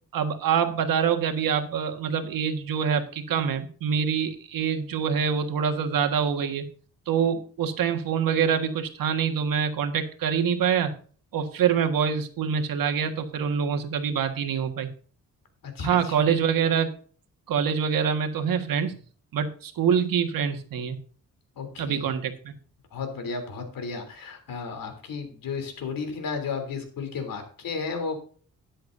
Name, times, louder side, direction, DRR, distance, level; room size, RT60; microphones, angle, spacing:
voice 1, 0.1-6.6 7.1-10.9 11.3-14.9 15.8-16.9 17.5-19.0 19.3-21.0 21.8-22.5, right 7 dB, 85° right, 6 dB, 1.7 m, -25 dB
voice 2, 15.7-16.1 21.6-22.1 22.9-28.2, left 5 dB, 80° left, 6 dB, 3.3 m, -33 dB
12.5 x 10.5 x 2.7 m, 0.42 s
wide cardioid pair, 145°, 33 cm